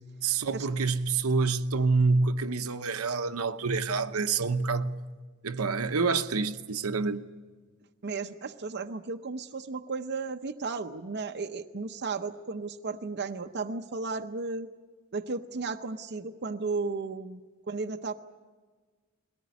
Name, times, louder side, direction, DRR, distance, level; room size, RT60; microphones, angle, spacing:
voice 1, 0.2-5.0 5.4-7.3, right 4 dB, 75° right, 0.9 m, -27 dB
voice 2, 8.0-14.7 15.1-17.4 17.7-18.1, right 4 dB, 50° right, 0.7 m, -34 dB
22.0 x 18.0 x 9.5 m
head